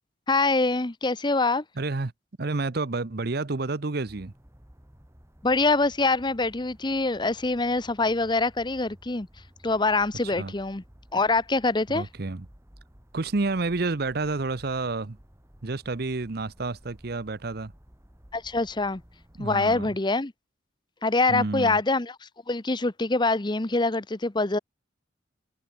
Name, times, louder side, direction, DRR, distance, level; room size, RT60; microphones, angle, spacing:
voice 1, 0.3-1.6 5.4-9.3 9.6-10.8 11.1-12.1 18.3-19.0 19.4-20.3 21.0-24.6, left 3 dB, 25° left, 0.9 m, -25 dB
voice 2, 1.8-2.1 2.4-4.3 10.4-10.5 11.9-12.5 13.1-15.2 15.6-17.7 19.4-19.9 21.3-21.8, right 3 dB, 55° right, 0.8 m, -29 dB
sound 1, 4.1-19.9, equal, 15° right, 2.8 m, -54 dB
head